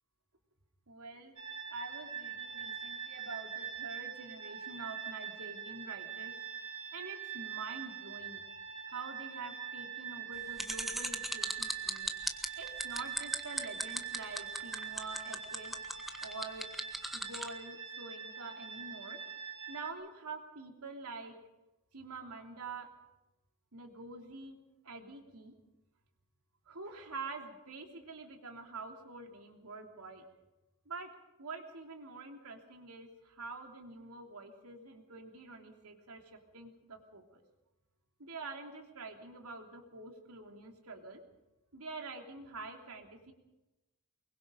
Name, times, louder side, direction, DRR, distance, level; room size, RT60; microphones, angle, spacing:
voice 1, 0.9-1.3 1.7-6.3 6.9-8.4 8.9-12.1 12.6-15.7 16.2-16.7 17.1-19.2 19.7-21.4 21.9-22.9 23.7-24.6 24.8-25.5 26.7-30.2 30.8-31.1 31.4-37.4 38.2-41.2 41.7-43.3, right 3 dB, 80° right, 3 dB, 3.3 m, -46 dB
sound 1, 1.4-19.9, right 8 dB, 65° right, 4.2 m, -43 dB
sound 2, 10.6-17.5, equal, ahead, 1.4 m, -36 dB
24.0 x 22.5 x 5.3 m, 1.0 s
head